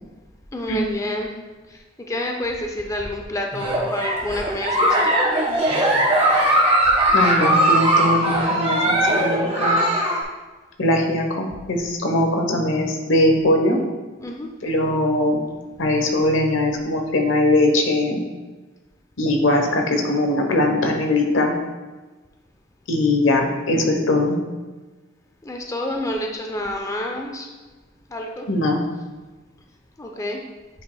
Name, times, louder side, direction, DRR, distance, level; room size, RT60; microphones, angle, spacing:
voice 1, 0.5-1.3 1.7-1.8 2.1-5.5 14.2-14.5 25.4-27.5 28.1-28.5 30.0-30.4, left 1 dB, 15° left, 2 dB, 0.6 m, -28 dB
Giggle, 3.5-10.2, right 1 dB, 30° right, 1.4 m, -19 dB
voice 2, 7.1-9.8 10.8-13.8 14.6-15.4 15.8-18.2 19.2-21.5 22.9-24.4 28.5-28.8, left 1 dB, 85° left, 3 dB, 1.0 m, -20 dB
9.0 x 5.0 x 2.2 m, 1.3 s
head